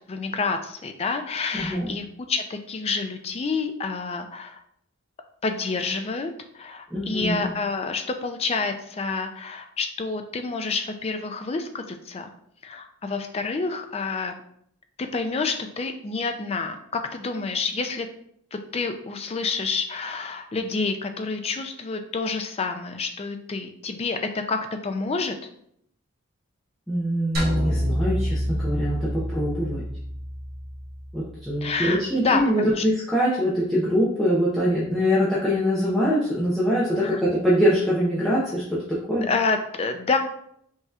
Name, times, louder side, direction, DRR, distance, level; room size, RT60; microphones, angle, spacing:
voice 1, 0.1-4.6 5.4-12.3 12.6-14.3 15.0-18.1 18.5-25.4 31.6-32.8 37.0-37.2 39.2-40.2, left 4 dB, 30° left, 6 dB, 0.4 m, -28 dB
voice 2, 1.5-1.9 6.9-7.5 26.9-29.8 31.1-39.3, equal, ahead, -10 dB, 0.7 m, -23 dB
sound 1, 27.3-31.7, equal, 45° right, 1.4 m, -28 dB
5.4 x 2.9 x 2.4 m, 0.68 s
head